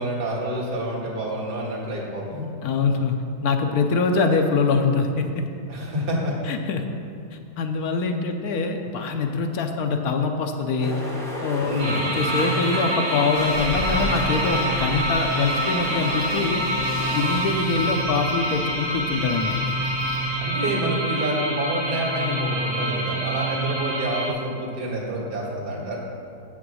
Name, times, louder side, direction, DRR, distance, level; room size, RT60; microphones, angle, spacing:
voice 1, 0.0-2.5 5.7-6.4 11.6-12.0 20.4-26.0, right 1 dB, 90° right, -4 dB, 2.3 m, -28 dB
voice 2, 2.6-5.4 6.5-6.9 7.6-11.0 11.4-16.6 17.1-19.6, left 4 dB, 70° left, 5 dB, 1.2 m, -24 dB
sound 1, 10.8-16.5, equal, ahead, 1.2 m, -34 dB
sound 2, 11.8-24.3, right 1 dB, 60° right, 1.9 m, -26 dB
sound 3, 13.3-20.4, left 1 dB, 85° left, 2.2 m, -36 dB
8.3 x 6.0 x 6.2 m, 2.4 s
omnidirectional pair, 1.7 m